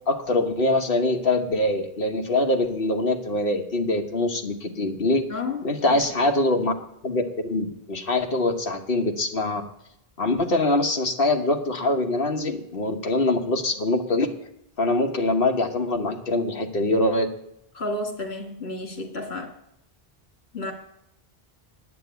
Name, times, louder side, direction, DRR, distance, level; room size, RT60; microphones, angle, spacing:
voice 1, 0.1-5.2 5.6-6.7 7.0-9.6 10.2-14.3 14.8-17.3, left 2 dB, 65° left, 4 dB, 1.4 m, -23 dB
voice 2, 5.3-5.6 5.9-6.0 17.7-19.5 20.5-20.7, left 2 dB, 80° left, 3 dB, 2.3 m, -31 dB
9.5 x 7.8 x 9.2 m, 0.79 s
omnidirectional pair, 1.0 m